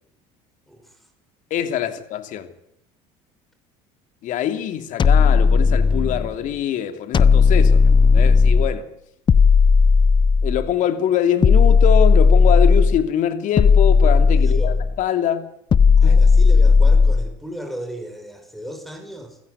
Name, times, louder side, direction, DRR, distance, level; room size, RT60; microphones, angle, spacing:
voice 1, 0.7-1.0 1.8-2.0 14.4-14.8 16.0-19.4, equal, ahead, 5.2 m, -35 dB
voice 2, 1.5-2.5 4.2-8.9 10.4-15.5 16.0-16.2, left 10 dB, 60° left, 2.9 m, -24 dB
sound 1, 5.0-6.3 7.1-8.8 9.3-10.7 11.4-13.0 13.6-15.0 15.7-17.3, left 5 dB, 30° left, 0.9 m, -14 dB
27.5 x 15.5 x 8.2 m
supercardioid pair, 95°, 15 cm